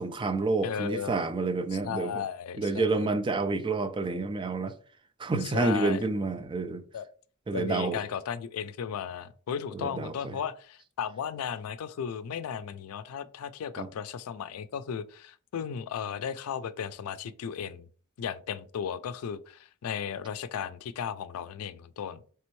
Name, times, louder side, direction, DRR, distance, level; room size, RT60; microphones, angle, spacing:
voice 1, 0.0-2.1 2.6-4.7 5.2-6.8 7.5-8.0 9.7-10.4 13.8-13.9, right 3 dB, 25° right, 0.4 m, -29 dB
voice 2, 0.6-1.2 1.8-3.1 5.4-6.0 6.9-7.1 7.5-17.9 18.2-22.2, left 7 dB, 85° left, 0.4 m, -35 dB
4.2 x 3.3 x 3.0 m
head